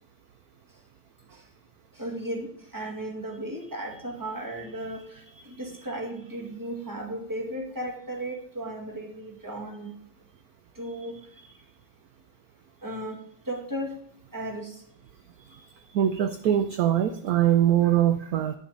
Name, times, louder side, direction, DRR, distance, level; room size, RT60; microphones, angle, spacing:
voice 1, 2.0-10.0 10.8-11.2 12.8-13.2 13.5-13.9 14.3-14.8, right 1 dB, 10° right, 1 dB, 1.8 m, -35 dB
voice 2, 15.9-18.5, right 11 dB, 65° right, 9 dB, 1.0 m, -22 dB
11.5 x 7.1 x 5.3 m, 0.64 s
omnidirectional pair, 2.1 m